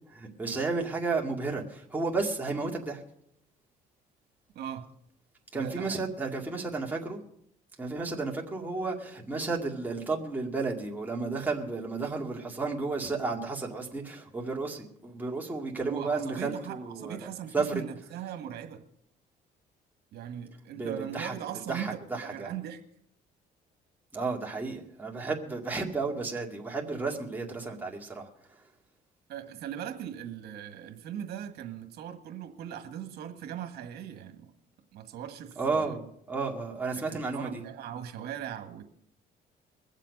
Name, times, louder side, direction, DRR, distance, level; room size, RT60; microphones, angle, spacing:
voice 1, 0.1-3.0 5.5-7.2 7.8-17.8 20.7-21.3 21.7-22.5 24.1-28.6 35.6-37.6, right 3 dB, 10° right, 2.2 m, -33 dB
voice 2, 4.6-4.9 5.5-6.0 15.8-18.8 20.1-22.8 29.3-34.5 34.9-35.9 37.0-38.8, right 10 dB, 70° right, 1.7 m, -39 dB
22.0 x 7.5 x 5.3 m
cardioid pair, 110°, 17 cm